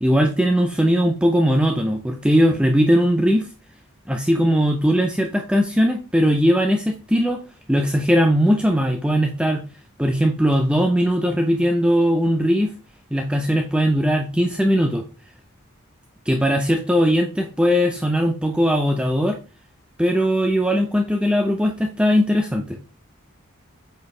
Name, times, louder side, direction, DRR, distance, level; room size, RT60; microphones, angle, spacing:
voice 1, 0.0-3.5 4.1-7.4 7.7-9.6 10.0-12.7 13.1-15.0 16.3-19.4 20.0-22.8, equal, 5° right, 3 dB, 0.6 m, -19 dB
8.3 x 4.6 x 3.3 m, 0.33 s
head